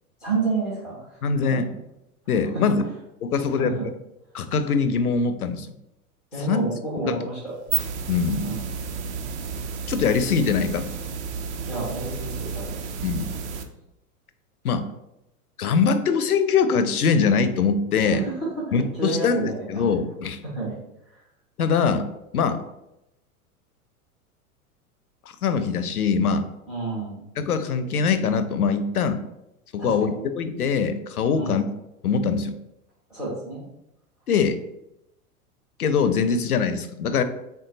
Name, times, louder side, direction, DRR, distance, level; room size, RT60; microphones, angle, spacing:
voice 1, 0.2-1.2 1.5-1.6 2.5-2.7 3.3-3.9 6.3-7.5 8.4-8.7 11.7-12.8 18.0-19.6 20.4-20.8 26.7-27.2 29.8-30.1 31.3-31.6 33.1-33.6, right 3 dB, ahead, -3 dB, 0.3 m, -30 dB
voice 2, 1.2-1.7 2.3-2.8 3.2-3.7 4.3-5.7 6.5-6.6 7.0-7.2 8.1-8.5 9.9-10.9 13.0-13.3 14.6-14.9 15.6-18.2 18.7-20.4 21.6-22.1 22.3-22.6 25.4-26.4 27.4-29.2 29.7-31.6 32.0-32.6 34.3-34.6 35.8-37.2, left 5 dB, 80° left, 10 dB, 0.5 m, -22 dB
sound 1, 7.5-13.6, right 6 dB, 50° right, 0.5 m, -31 dB
3.6 x 2.2 x 3.9 m, 0.85 s
figure-of-eight pair, 95°, 44 cm